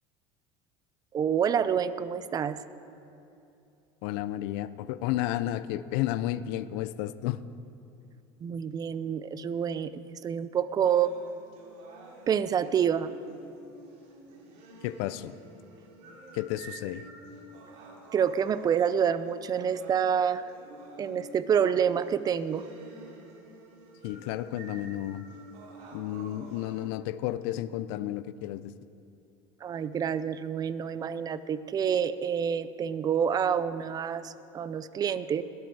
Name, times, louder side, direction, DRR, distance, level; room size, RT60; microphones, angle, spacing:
voice 1, 1.1-2.6 8.4-11.1 12.3-13.1 18.1-20.4 21.0-22.6 29.6-35.4, right 8 dB, 30° right, 15 dB, 0.5 m, -27 dB
voice 2, 4.0-7.4 14.8-15.4 16.3-17.1 24.0-25.2 25.9-28.7, left 14 dB, 70° left, 16 dB, 0.5 m, -32 dB
sound 1, 10.8-26.8, right 2 dB, 60° right, 2.6 m, -49 dB
21.0 x 8.2 x 4.7 m, 2.7 s
supercardioid pair, 115°, 13 cm